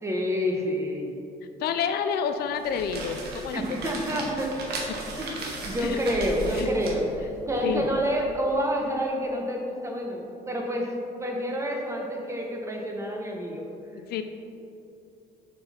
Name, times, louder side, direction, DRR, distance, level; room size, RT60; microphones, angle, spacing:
voice 1, 0.0-1.1 3.5-4.6 5.2-10.9 11.2-13.7, equal, 15° right, 0 dB, 1.2 m, -28 dB
voice 2, 1.6-3.6 5.8-6.0 6.6-6.7 7.6-7.9 14.1-14.2, left 7 dB, 70° left, 8 dB, 0.5 m, -28 dB
sound 1, 2.5-8.1, right 2 dB, 70° right, 1.3 m, -37 dB
6.6 x 6.0 x 4.3 m, 2.7 s
cardioid pair, 110°, 17 cm